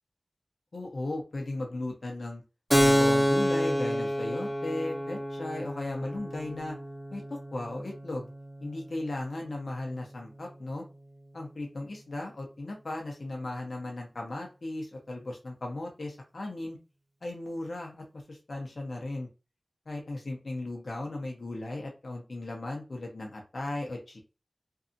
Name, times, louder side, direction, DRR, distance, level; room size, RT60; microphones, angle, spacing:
voice 1, 0.7-2.4 2.8-6.8 7.1-8.3 8.6-10.8 11.3-16.8 17.2-19.3 19.9-24.2, left 2 dB, 85° left, 0 dB, 0.8 m, -36 dB
Keyboard (musical), 2.7-10.0, equal, 15° right, 1.0 m, -29 dB
2.7 x 2.3 x 2.6 m, 0.30 s
wide cardioid pair, 40°, 0 cm